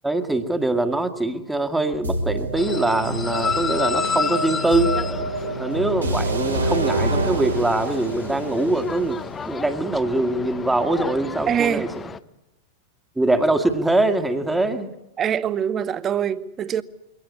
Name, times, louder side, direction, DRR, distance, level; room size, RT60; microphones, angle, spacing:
voice 1, 0.0-4.9 5.6-11.9 13.2-14.9, right 2 dB, 5° right, 1.8 m, -23 dB
sound 1, 2.0-9.9, right 2 dB, 85° right, 3.9 m, -27 dB
sound 2, 2.6-12.2, left 6 dB, 20° left, 0.9 m, -31 dB
voice 2, 11.5-11.9 15.2-16.8, right 8 dB, 25° right, 0.9 m, -23 dB
23.5 x 18.0 x 8.4 m
figure-of-eight pair, 90°, 0 cm